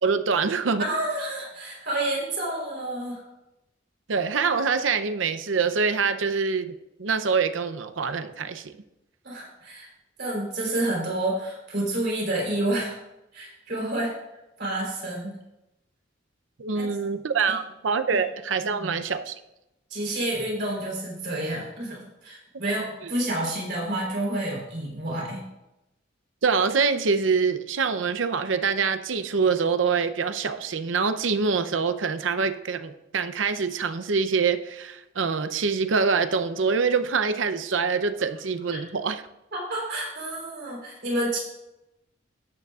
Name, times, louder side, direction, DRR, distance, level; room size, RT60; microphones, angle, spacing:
voice 1, 0.0-0.8 4.1-8.7 16.6-19.4 26.4-39.2, right 5 dB, 85° right, 10 dB, 0.7 m, -25 dB
voice 2, 0.8-3.2 9.2-9.9 10.2-12.9 13.3-14.1 14.6-15.3 16.7-16.9 17.5-17.6 18.1-18.2 18.7-18.9 19.9-25.4 39.5-41.4, right 1 dB, 60° right, -2 dB, 3.8 m, -29 dB
13.5 x 9.3 x 2.4 m, 0.92 s
head